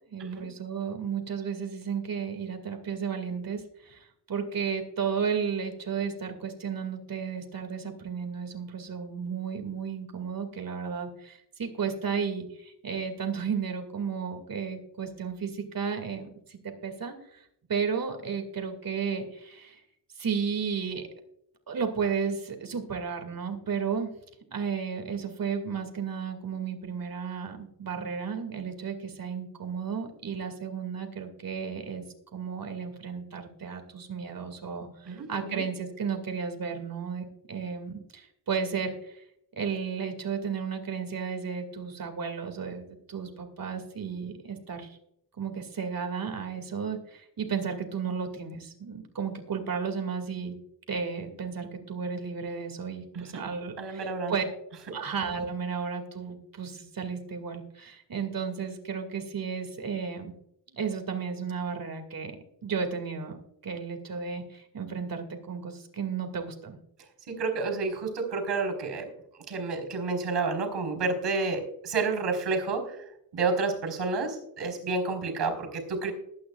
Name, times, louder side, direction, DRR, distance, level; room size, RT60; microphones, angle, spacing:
voice 1, 0.1-17.4 17.7-19.8 20.2-21.1 21.7-24.1 24.5-32.0 32.3-39.2 39.6-45.0 45.4-50.5 50.9-54.4 54.9-60.3 60.7-62.4 62.6-63.4 63.6-66.8, right 6 dB, 55° right, 5 dB, 2.3 m, -33 dB
voice 2, 35.1-35.6 53.1-53.4 53.8-54.3 67.3-69.1 69.3-73.0 73.3-76.1, right 4 dB, 80° right, 6 dB, 4.3 m, -30 dB
20.5 x 9.5 x 2.4 m, 0.73 s
wide cardioid pair, 170°, 41 cm